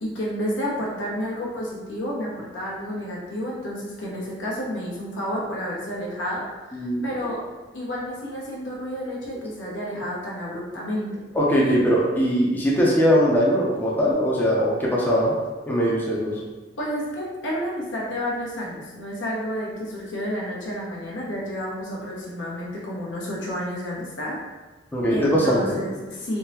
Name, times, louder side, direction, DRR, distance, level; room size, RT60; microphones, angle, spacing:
voice 1, 0.0-6.4 6.8-7.4 7.7-11.2 16.8-24.4 25.1-26.4, equal, 85° left, -5 dB, 0.9 m, -30 dB
voice 2, 6.7-7.0 11.3-15.3 15.6-16.3 24.9-25.8, equal, 10° left, -5 dB, 0.5 m, -21 dB
3.5 x 2.1 x 2.8 m, 1.3 s
head